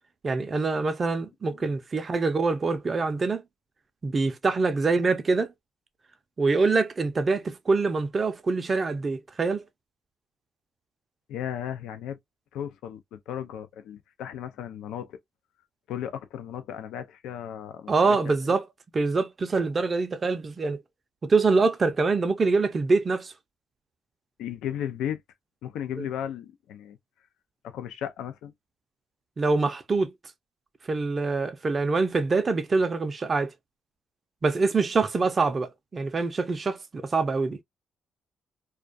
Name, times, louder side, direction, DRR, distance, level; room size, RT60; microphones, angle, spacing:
voice 1, 0.2-3.4 4.0-5.5 6.4-9.6 17.9-18.7 18.9-20.8 21.2-23.3 26.0-26.1 29.4-30.1 30.8-33.5 34.4-37.6, right 3 dB, 35° right, 0.4 m, -25 dB
voice 2, 11.3-12.2 12.5-15.2 15.9-17.9 18.3-18.6 24.4-25.2 25.6-27.0 27.6-28.5, left 10 dB, 85° left, 0.4 m, -35 dB
2.3 x 2.2 x 2.4 m
cardioid pair, 90°, 0 cm